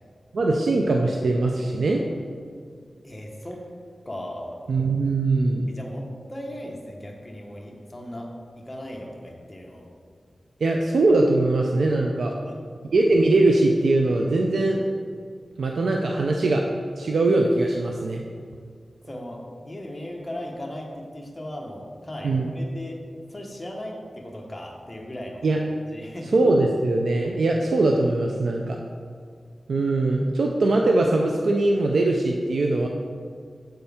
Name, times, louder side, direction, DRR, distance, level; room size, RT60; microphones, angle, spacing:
voice 1, 0.3-2.0 4.7-5.7 10.6-12.3 12.9-14.8 15.6-16.6 17.0-18.2 22.2-22.5 25.4-25.6 26.3-28.8 29.7-32.9, right 2 dB, 80° right, 1 dB, 0.4 m, -21 dB
voice 2, 3.0-3.6 4.0-4.6 5.7-8.3 8.7-9.9 12.3-12.6 19.1-23.0 23.3-25.4 25.9-26.4, left 1 dB, 20° left, -1 dB, 1.0 m, -37 dB
7.6 x 4.4 x 3.5 m, 2.1 s
wide cardioid pair, 75°, 0 cm